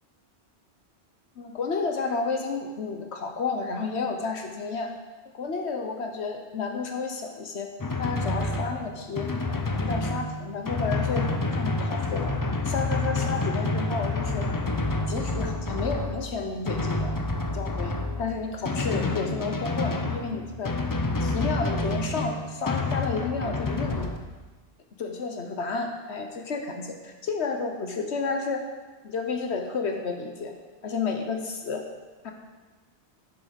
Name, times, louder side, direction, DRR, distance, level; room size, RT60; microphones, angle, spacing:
voice 1, 1.4-4.9 5.3-7.7 8.0-11.3 11.5-12.3 12.6-14.5 15.1-17.2 17.5-20.7 21.2-24.1 25.0-28.6 29.0-30.5 30.8-31.8 32.2-32.3, left 4 dB, 75° left, 4 dB, 1.2 m, -31 dB
Drum, 7.8-24.2, left 2 dB, 25° left, 0.5 m, -28 dB
11.0 x 6.2 x 5.2 m, 1.3 s
omnidirectional pair, 1.1 m